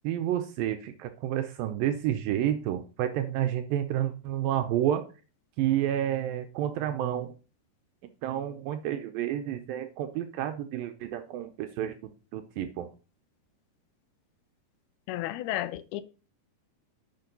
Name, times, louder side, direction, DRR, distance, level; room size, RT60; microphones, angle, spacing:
voice 1, 0.0-5.1 5.6-7.3 8.2-12.0 12.3-12.9, right 11 dB, 80° right, 2.0 m, -30 dB
voice 2, 15.1-16.0, left 14 dB, 80° left, 2.4 m, -32 dB
9.3 x 6.0 x 5.2 m
omnidirectional pair, 4.8 m